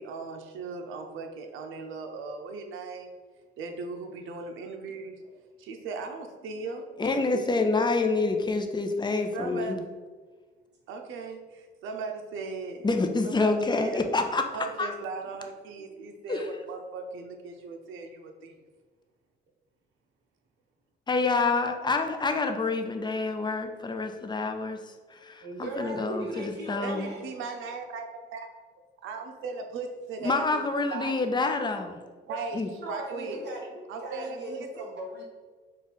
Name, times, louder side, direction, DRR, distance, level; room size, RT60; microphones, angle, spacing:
voice 1, 0.0-3.1 3.6-5.2 5.6-7.2 9.3-9.9 10.9-12.9 13.2-14.0 14.5-18.5 26.8-28.0 28.3-28.5 29.0-30.6 30.9-31.2 32.3-32.6 32.9-33.4 33.9-34.7, right 4 dB, 85° right, 4 dB, 0.6 m, -38 dB
voice 2, 7.0-9.8 12.8-14.9 16.3-16.5 21.1-24.8 25.1-27.2 30.2-32.0 32.5-32.7, left 3 dB, 20° left, 5 dB, 0.6 m, -27 dB
voice 3, 25.4-27.2 32.3-32.4 32.8-35.2, right 1 dB, 60° right, -2 dB, 1.0 m, -38 dB
5.4 x 2.4 x 4.0 m, 1.4 s
cardioid pair, 90°, 20 cm